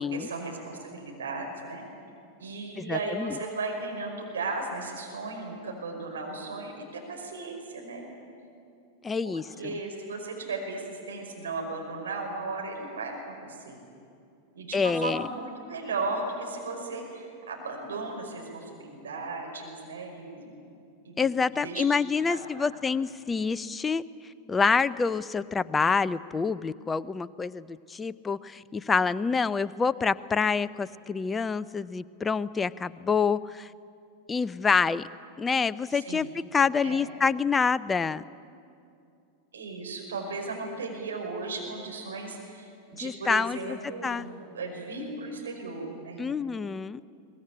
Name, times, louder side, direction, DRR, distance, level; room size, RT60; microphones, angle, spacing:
voice 1, 0.0-1.9 2.4-8.1 9.2-13.8 14.5-20.6 21.0-21.9 22.3-22.8 35.9-36.3 36.8-37.0 39.5-46.3, right 3 dB, 65° right, 1 dB, 5.3 m, -36 dB
voice 2, 2.8-3.4 9.0-9.8 14.7-15.3 21.2-24.0 24.5-33.7 34.3-35.1 35.4-36.3 36.5-38.2 43.0-43.8 44.0-44.3 46.2-47.0, left 5 dB, 15° left, 17 dB, 0.6 m, -27 dB
23.0 x 19.5 x 10.0 m, 2.5 s
figure-of-eight pair, 90°, 0 cm